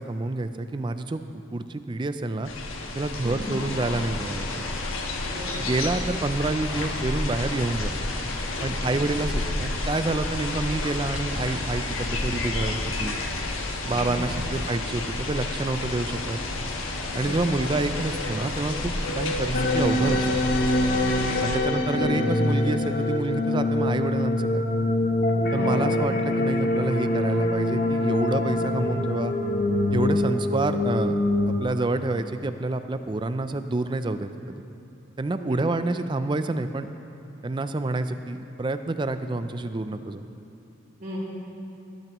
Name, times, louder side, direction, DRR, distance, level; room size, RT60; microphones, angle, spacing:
voice 1, 0.0-2.5 2.9-4.8 5.6-7.9 8.6-13.2 13.9-16.4 17.1-20.3 21.4-24.7 25.5-29.3 29.9-31.2 31.5-34.6 35.2-36.9 37.4-40.2, right 2 dB, 25° right, 10 dB, 0.3 m, -28 dB
sound 1, 2.4-21.6, left 2 dB, 80° left, 1.2 m, -30 dB
voice 2, 3.2-3.6 5.3-5.7 13.8-14.3 14.8-14.9 17.1-17.4 21.2-21.3 25.5-25.8 35.4-35.6 41.0-41.2, equal, 45° right, -6 dB, 3.3 m, -36 dB
sound 2, 19.5-31.6, left 1 dB, 45° left, 0.8 m, -24 dB
18.0 x 12.0 x 3.0 m, 2.8 s
head